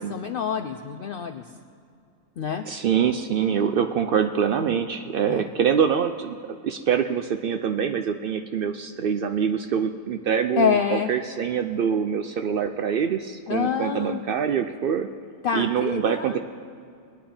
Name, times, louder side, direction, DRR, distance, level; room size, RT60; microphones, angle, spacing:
voice 1, 0.0-1.4 2.4-2.6 5.3-5.4 10.6-11.1 13.5-14.2 15.4-16.4, left 7 dB, 90° left, 7 dB, 0.4 m, -26 dB
voice 2, 2.7-6.4 6.6-15.1 15.5-16.4, right 7 dB, 85° right, 7 dB, 0.4 m, -24 dB
21.0 x 9.4 x 4.3 m, 2.4 s
omnidirectional pair, 1.5 m